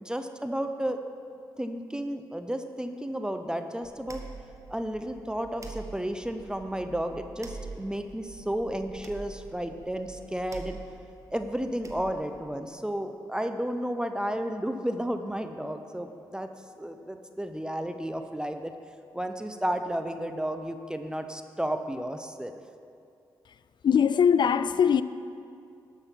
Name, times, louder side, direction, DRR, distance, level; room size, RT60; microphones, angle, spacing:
voice 1, 0.0-1.0 1.6-4.2 4.7-10.8 11.3-16.5 16.8-18.7 19.1-22.5, right 1 dB, 10° right, 0.7 m, -32 dB
sound 1, 3.8-12.4, right 4 dB, 35° right, 1.3 m, -46 dB
voice 2, 23.8-25.0, left 7 dB, 60° left, 0.4 m, -21 dB
12.0 x 6.4 x 5.8 m
cardioid pair, 55°, 9 cm